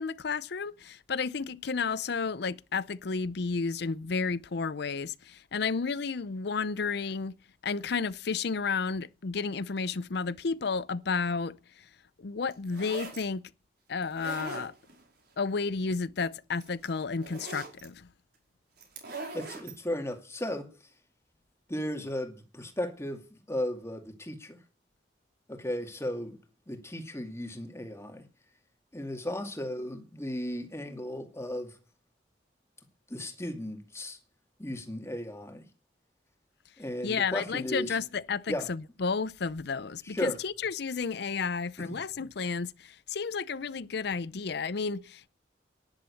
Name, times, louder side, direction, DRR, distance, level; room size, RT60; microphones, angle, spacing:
voice 1, 0.0-7.3 7.6-11.9 12.2-13.4 13.9-14.7 15.4-18.1 37.0-45.3, left 5 dB, 65° left, 0.6 m, -32 dB
sound 1, 12.5-13.2 14.0-15.0 16.2-16.3 16.6-17.9 18.8-19.8, right 3 dB, 65° right, 5.2 m, -41 dB
voice 2, 19.3-20.7 21.7-24.6 25.5-26.4 26.7-28.2 28.9-31.8 33.1-34.2 34.6-35.6 36.8-38.0 38.5-38.7 40.1-40.4 41.8-42.0, left 1 dB, 15° left, 2.3 m, -35 dB
11.5 x 10.5 x 7.1 m
head